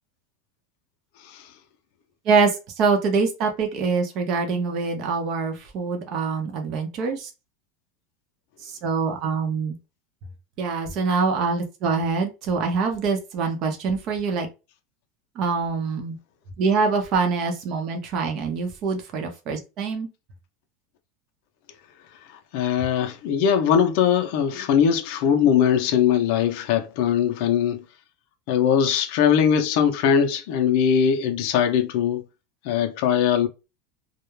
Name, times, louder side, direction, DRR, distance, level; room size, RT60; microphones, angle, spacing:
voice 1, 2.3-7.3 8.6-9.8 10.6-14.5 15.4-16.2 16.6-20.1, right 4 dB, 40° right, 0.6 m, -24 dB
voice 2, 22.5-27.8 28.5-32.2 32.7-33.5, left 8 dB, 60° left, 0.5 m, -20 dB
2.3 x 2.0 x 3.0 m
supercardioid pair, 155°, 0 cm